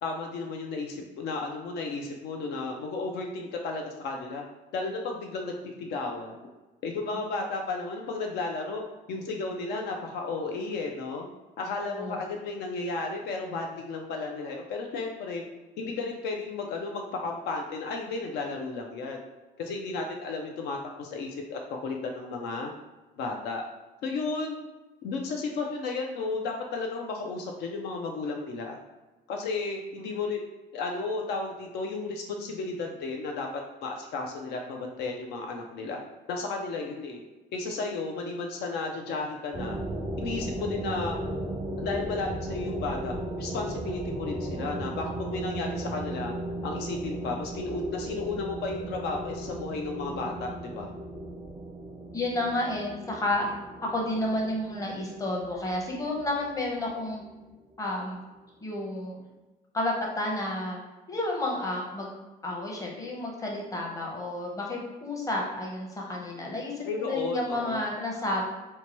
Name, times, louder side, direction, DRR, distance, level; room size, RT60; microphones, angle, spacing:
voice 1, 0.0-4.4 4.7-6.4 6.8-8.8 9.1-11.3 11.6-15.4 15.8-19.2 19.6-22.7 23.2-23.6 24.0-24.6 25.0-28.8 29.3-30.4 30.7-36.0 36.3-37.2 37.5-39.8 40.2-41.2 41.8-46.3 46.6-50.9 66.8-67.8, left 3 dB, 75° left, 2 dB, 0.4 m, -33 dB
voice 2, 11.8-12.2 52.1-53.5 53.8-57.2 57.8-58.2 58.6-59.2 59.7-60.8 61.1-62.1 62.4-68.4, left 1 dB, 20° left, -2 dB, 0.7 m, -31 dB
sound 1, 39.5-57.0, right 1 dB, 20° right, 0.4 m, -36 dB
2.8 x 2.2 x 2.9 m, 1.1 s
cardioid pair, 110°, 17 cm